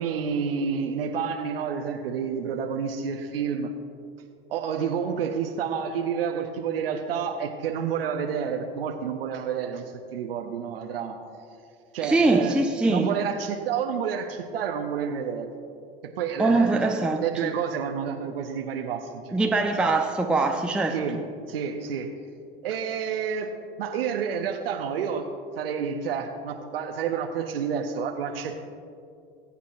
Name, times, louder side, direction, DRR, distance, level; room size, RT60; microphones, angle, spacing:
voice 1, 0.0-3.7 4.5-9.8 10.1-11.2 11.9-12.5 12.9-15.5 16.2-16.8 17.2-19.7 20.9-21.2 21.5-22.1 22.6-23.5 23.8-25.3 25.6-28.6, right 7 dB, 75° right, 4 dB, 0.8 m, -29 dB
voice 2, 12.0-13.1 16.4-17.5 19.3-21.2, right 3 dB, 5° right, 2 dB, 0.6 m, -23 dB
21.0 x 8.3 x 2.5 m, 2.4 s
figure-of-eight pair, 75°, 30 cm